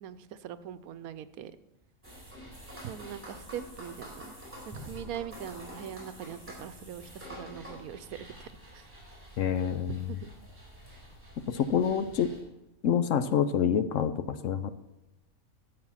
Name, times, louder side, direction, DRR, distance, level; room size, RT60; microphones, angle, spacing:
voice 1, 0.0-1.5 2.8-4.3 4.7-8.5 8.7-8.8 9.9-10.3, right 9 dB, 85° right, 13 dB, 1.1 m, -41 dB
sound 1, 2.0-12.4, equal, 10° right, 4.1 m, -47 dB
voice 2, 9.4-10.1 11.5-12.3 12.8-14.7, left 8 dB, 65° left, 12 dB, 1.0 m, -27 dB
12.0 x 7.6 x 5.7 m, 0.98 s
omnidirectional pair, 1.5 m